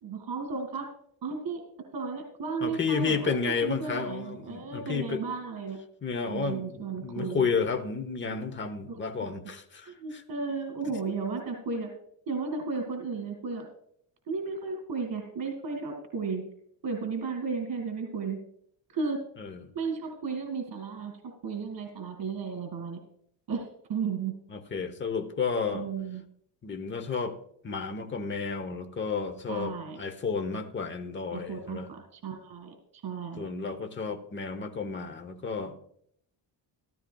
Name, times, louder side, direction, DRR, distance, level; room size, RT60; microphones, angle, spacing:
voice 1, 0.0-0.9 1.2-1.6 1.9-5.8 6.3-7.5 8.9-9.0 9.8-11.9 12.3-13.7 14.3-16.4 16.8-18.4 18.9-19.2 19.7-21.1 21.4-23.0 23.5-23.6 23.9-24.3 25.7-26.2 29.5-30.0 31.3-33.5, right 5 dB, 60° right, 3 dB, 2.1 m, -34 dB
voice 2, 2.6-5.2 6.0-10.2 19.4-19.6 24.5-25.9 26.6-27.4 27.6-31.9 33.4-35.8, left 5 dB, 25° left, 8 dB, 0.9 m, -32 dB
14.5 x 13.5 x 2.3 m, 0.68 s
cardioid pair, 140°, 44 cm